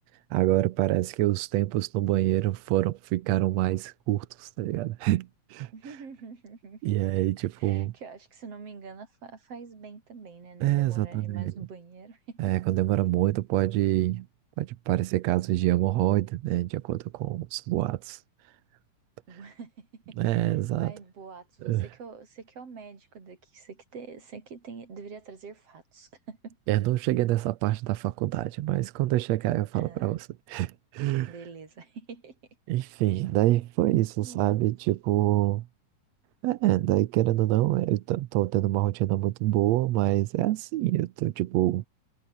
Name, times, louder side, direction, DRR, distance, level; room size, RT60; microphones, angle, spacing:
voice 1, 0.3-5.7 6.8-7.9 10.6-11.5 12.4-14.3 14.6-18.2 20.2-20.9 21.6-21.9 26.7-31.3 32.7-35.7 36.4-41.8, right 16 dB, 75° right, 1.6 m, -26 dB
voice 2, 5.7-7.0 7.6-12.4 19.3-26.6 29.7-30.2 31.2-32.4 34.2-34.6, right 5 dB, 45° right, 4.7 m, -45 dB
omnidirectional pair, 3.8 m